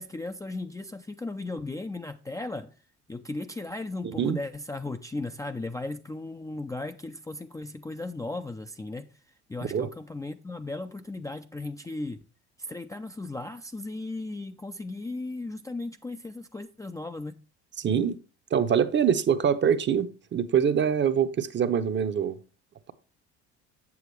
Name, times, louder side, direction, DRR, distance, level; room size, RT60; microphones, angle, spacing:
voice 1, 0.0-2.7 3.1-9.1 9.5-12.2 12.6-17.4, left 2 dB, 10° left, 0.5 m, -36 dB
voice 2, 17.8-18.2 18.5-22.4, right 8 dB, 35° right, 0.8 m, -24 dB
8.0 x 7.1 x 3.1 m
hypercardioid pair, 70°, 34 cm